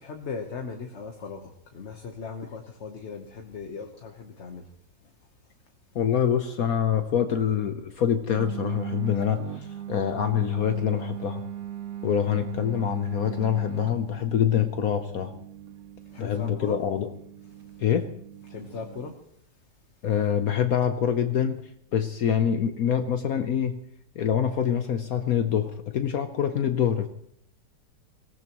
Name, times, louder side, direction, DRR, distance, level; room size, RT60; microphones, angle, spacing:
voice 1, 0.0-4.7 5.0-5.5 16.1-16.8 18.5-19.2, left 5 dB, 45° left, 4 dB, 1.3 m, -38 dB
voice 2, 5.9-11.4 12.0-15.3 16.2-17.1 17.8-18.1 20.0-21.6 21.9-23.8 24.2-27.1, left 9 dB, 65° left, 8 dB, 1.2 m, -25 dB
sound 1, 8.3-19.1, right 11 dB, 65° right, 1.2 m, -39 dB
25.0 x 17.5 x 3.0 m, 0.66 s
omnidirectional pair, 1.8 m